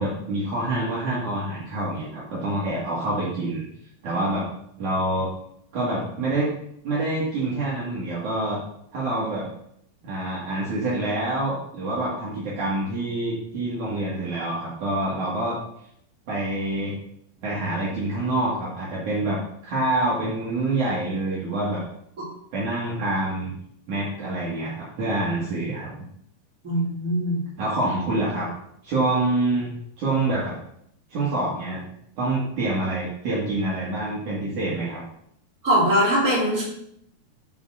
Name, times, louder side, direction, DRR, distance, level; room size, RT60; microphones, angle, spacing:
voice 1, 0.0-3.7 4.0-4.4 4.8-5.3 5.7-6.5 6.8-8.6 8.9-9.5 10.0-15.6 16.3-17.0 17.4-21.8 22.5-23.5 23.9-26.0 27.6-28.5 28.8-29.7 30.0-30.6 31.1-31.8 32.2-35.0, right 2 dB, 50° right, -7 dB, 2.9 m, -26 dB
voice 2, 26.6-27.4 35.6-36.6, equal, 20° right, -11 dB, 3.4 m, -21 dB
9.9 x 5.1 x 6.3 m, 0.74 s
omnidirectional pair, 5.0 m